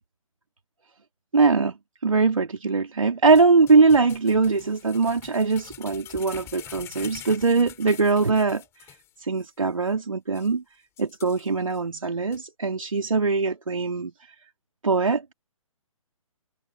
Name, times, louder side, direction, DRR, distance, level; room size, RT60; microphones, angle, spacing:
voice 1, 1.3-1.7 2.0-8.6 9.2-10.6 11.0-14.1 14.8-15.3, right 4 dB, 65° right, 3.2 m, -21 dB
sound 1, 3.4-9.1 9.4-9.5 9.9-10.0 10.3-10.5 11.0-11.8 12.3-12.4, left 12 dB, 15° left, 4.6 m, -45 dB
figure-of-eight pair, 135°, 18 cm